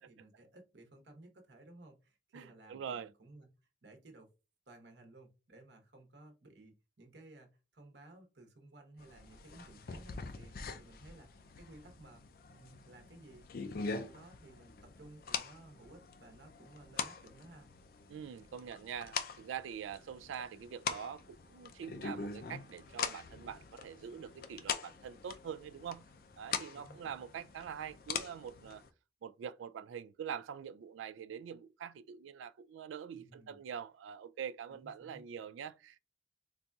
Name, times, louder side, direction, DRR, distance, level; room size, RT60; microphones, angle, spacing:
voice 1, 0.0-3.5 3.8-4.3 4.7-12.2 12.5-17.7 26.7-27.2 33.1-33.6 34.7-35.2, right 2 dB, 65° right, 1.0 m, -57 dB
voice 2, 2.3-3.1 18.1-26.1 26.4-28.8 29.2-36.0, right 8 dB, 85° right, 0.3 m, -44 dB
sound 1, 9.0-28.9, left 5 dB, 50° left, 0.4 m, -43 dB
4.0 x 2.6 x 2.3 m
head